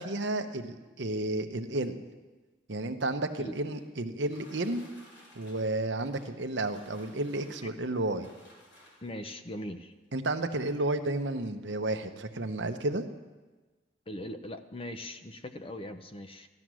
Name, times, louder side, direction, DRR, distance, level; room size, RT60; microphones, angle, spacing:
voice 1, 0.0-2.0 2.7-4.9 5.4-8.3 10.1-13.0, right 2 dB, 65° right, 7 dB, 1.0 m, -32 dB
sound 1, 3.1-9.3 10.2-10.3 10.7-10.8 11.1-11.4, equal, 70° left, 5.9 m, -57 dB
voice 2, 9.0-9.9 14.1-16.5, left 1 dB, 30° left, 8 dB, 0.7 m, -40 dB
14.5 x 12.0 x 6.3 m, 1.3 s
head